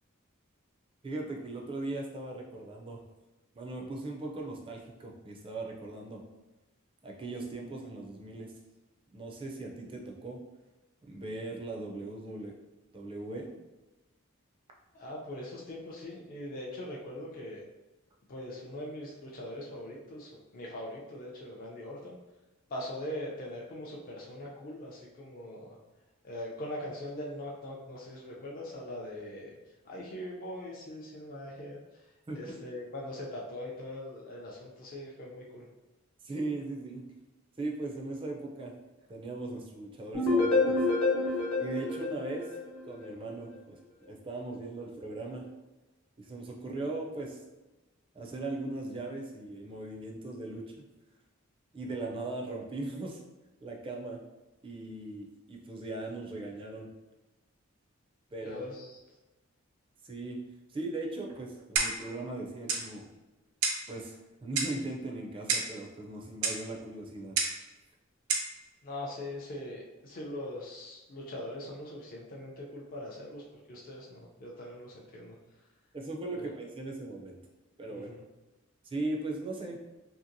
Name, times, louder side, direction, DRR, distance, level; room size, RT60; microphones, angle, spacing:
voice 1, 1.0-3.0 3.5-6.2 7.0-8.5 9.1-10.4 11.1-12.5 12.9-13.5 32.3-32.6 36.2-37.0 37.6-38.7 39.1-40.8 41.6-42.6 42.8-45.4 46.2-47.4 48.1-50.8 51.7-53.2 53.6-54.2 54.6-56.9 58.3-58.6 60.0-60.4 60.7-63.0 63.9-67.4 75.9-77.4 77.8-78.1 78.8-79.8, right 2 dB, 25° right, 0 dB, 0.3 m, -38 dB
voice 2, 14.9-17.6 18.3-22.2 22.7-25.7 26.2-29.5 29.8-31.8 32.4-35.7 58.4-59.0 68.8-73.4 73.7-75.3 76.3-76.4 77.9-78.2, left 1 dB, 45° left, -3 dB, 0.4 m, -41 dB
sound 1, 40.1-43.1, left 3 dB, 70° left, 1.0 m, -28 dB
Clock, 61.8-62.1 62.7-62.9 63.6-63.9 64.6-64.8 65.5-65.8 66.4-66.6 67.4-67.6 68.3-68.5, right 4 dB, 85° right, 0.5 m, -30 dB
2.8 x 2.7 x 2.5 m, 1.1 s
head